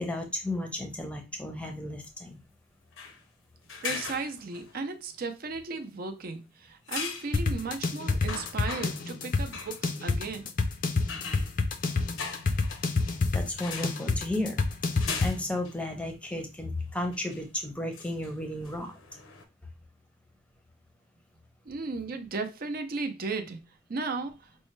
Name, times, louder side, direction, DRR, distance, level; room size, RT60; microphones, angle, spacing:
voice 1, 0.0-2.4 13.3-14.6 14.9-19.0, left 1 dB, 5° left, 0.7 m, -34 dB
sound 1, 2.9-3.2 3.7-4.7 6.9-7.4 7.9-8.0 8.3-9.1 9.5-9.8 11.1-13.2 13.6-14.0 15.0-15.8 16.3-16.4 17.1-17.4 17.9-19.4, left 5 dB, 80° left, 0.7 m, -39 dB
voice 2, 3.8-10.5 21.7-23.6 23.9-24.3, right 3 dB, 50° right, 0.5 m, -35 dB
sound 2, 7.3-15.3, left 3 dB, 45° left, 0.4 m, -28 dB
5.3 x 2.1 x 3.1 m
head